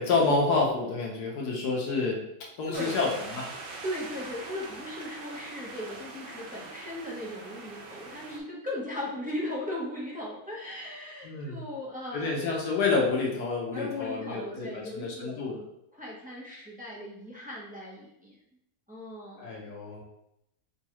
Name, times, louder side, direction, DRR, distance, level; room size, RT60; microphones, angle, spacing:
voice 1, 0.0-2.2 2.6-3.5 11.2-11.7 12.1-15.6 19.4-20.0, left 3 dB, 85° left, -1 dB, 1.4 m, -28 dB
voice 2, 2.7-3.0 3.8-12.4 13.7-15.4 15.9-18.4 18.9-19.6, left 1 dB, 10° right, -6 dB, 0.5 m, -37 dB
sound 1, 2.7-8.4, right 3 dB, 70° right, 0.5 m, -43 dB
5.2 x 2.3 x 3.0 m, 0.80 s
omnidirectional pair, 1.7 m